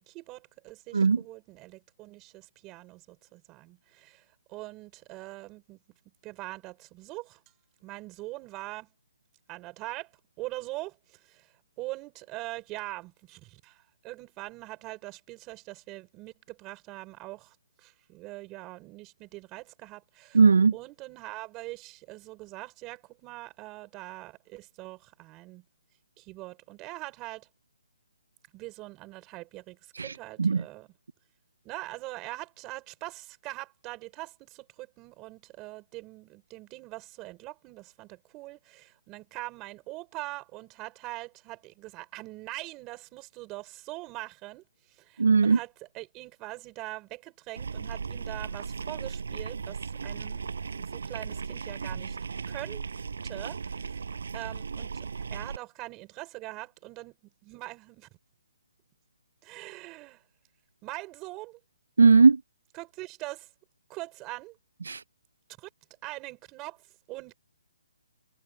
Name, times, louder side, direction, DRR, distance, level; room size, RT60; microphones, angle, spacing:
voice 1, 0.0-5.8 6.2-7.4 7.8-8.9 9.5-20.4 20.7-25.6 26.2-27.5 28.5-30.9 31.6-52.2 52.5-52.9 53.2-54.0 54.3-58.1 59.4-60.2 60.8-61.6 62.7-63.5 63.9-64.6 65.6-65.7 66.0-67.4, right 20 dB, 15° right, 5.9 m, -42 dB
voice 2, 20.3-20.7 30.0-30.1 30.4-30.6 45.2-45.6 62.0-62.4 64.9-65.0, right 4 dB, 85° right, 0.5 m, -18 dB
sound 1, 47.6-55.6, right 5 dB, 70° right, 6.1 m, -36 dB
hypercardioid pair, 170°, 0 cm